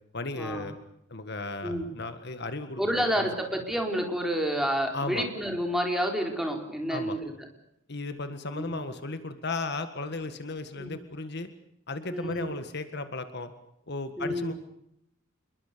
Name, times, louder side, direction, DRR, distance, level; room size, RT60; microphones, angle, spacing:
voice 1, 0.1-0.8 1.1-2.8 3.2-3.3 4.9-5.3 6.9-7.2 7.9-11.5 11.9-13.5 13.9-14.5, left 3 dB, 55° left, 9 dB, 1.8 m, -35 dB
voice 2, 2.8-7.3 8.5-8.8 10.8-11.0 12.1-12.5 14.2-14.5, equal, ahead, 2 dB, 4.1 m, -29 dB
28.0 x 22.0 x 6.9 m, 0.77 s
head